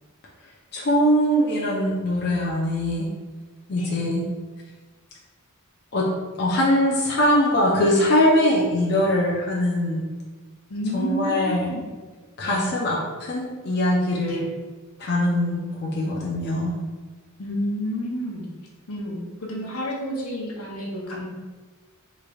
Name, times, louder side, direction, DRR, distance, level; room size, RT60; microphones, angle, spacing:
voice 1, 0.7-3.1 3.7-4.2 5.9-6.1 6.4-10.0 10.9-11.7 12.4-14.5 15.0-16.7, left 1 dB, 50° left, -4 dB, 0.5 m, -22 dB
voice 2, 10.7-11.9 12.4-12.5 14.3-14.4 17.4-18.5 18.9-21.3, equal, 80° left, -2 dB, 0.8 m, -30 dB
3.8 x 3.2 x 2.3 m, 1.3 s
head